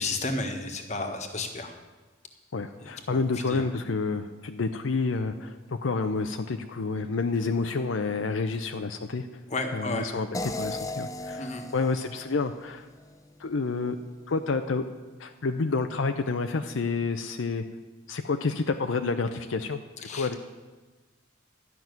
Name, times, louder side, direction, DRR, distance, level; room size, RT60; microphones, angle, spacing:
voice 1, 0.0-1.7 3.5-3.6 9.5-10.2 11.4-11.6 20.1-20.4, left 2 dB, 35° left, 4 dB, 1.4 m, -32 dB
voice 2, 2.5-9.3 9.7-12.9 13.4-14.0 14.3-14.9 15.2-17.6 18.1-19.8 20.1-20.4, left 4 dB, 75° left, 6 dB, 0.6 m, -29 dB
sound 1, 10.3-13.4, left 2 dB, 15° left, 0.5 m, -37 dB
12.5 x 6.0 x 9.4 m, 1.3 s
head